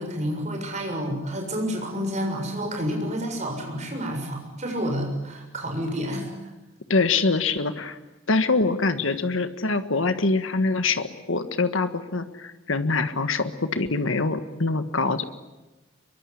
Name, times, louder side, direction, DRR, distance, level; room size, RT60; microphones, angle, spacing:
voice 1, 0.0-6.3, equal, 35° right, 2 dB, 6.9 m, -29 dB
voice 2, 6.9-8.0 8.3-15.2, left 3 dB, 75° left, 10 dB, 1.6 m, -24 dB
24.0 x 23.0 x 10.0 m, 1.1 s
head